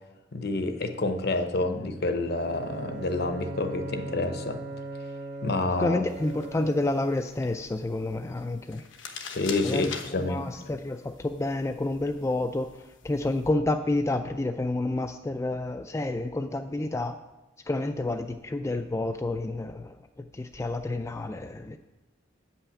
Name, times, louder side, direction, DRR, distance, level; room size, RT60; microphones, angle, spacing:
voice 1, 0.3-4.6 5.4-6.0 9.3-9.9 10.1-10.4, left 2 dB, 55° left, 7 dB, 0.9 m, -28 dB
Bowed string instrument, 2.3-7.1, right 1 dB, 45° right, 1.0 m, -38 dB
voice 2, 5.8-8.8 9.6-17.2 17.7-19.9 20.3-21.8, left 2 dB, 15° left, 7 dB, 0.3 m, -29 dB
sound 1, 6.1-13.5, left 6 dB, 80° left, 1.1 m, -45 dB
8.6 x 5.6 x 7.1 m, 1.1 s
head